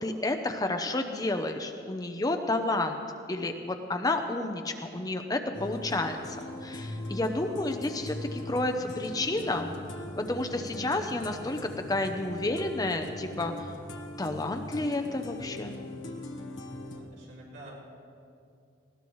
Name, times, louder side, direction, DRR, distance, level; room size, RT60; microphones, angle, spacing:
voice 1, 0.0-3.0 3.3-9.7 10.2-13.7 14.2-15.8, left 2 dB, 20° left, 5 dB, 0.6 m, -31 dB
sound 1, 5.5-17.0, left 1 dB, 85° left, 1.2 m, -40 dB
voice 2, 16.9-17.9, equal, 65° right, -5 dB, 4.6 m, -47 dB
19.5 x 17.0 x 3.1 m, 2.4 s
head